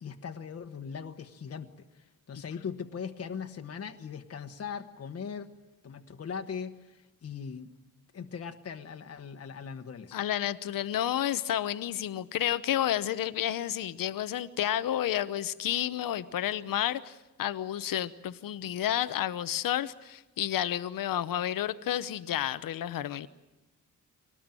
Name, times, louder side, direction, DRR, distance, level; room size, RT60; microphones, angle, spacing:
voice 1, 0.0-5.5 5.8-7.7 8.1-10.2, left 6 dB, 45° left, 6 dB, 1.2 m, -40 dB
voice 2, 10.1-23.3, left 11 dB, 85° left, 13 dB, 0.9 m, -31 dB
25.0 x 19.0 x 9.0 m, 1.0 s
wide cardioid pair, 140°, 33 cm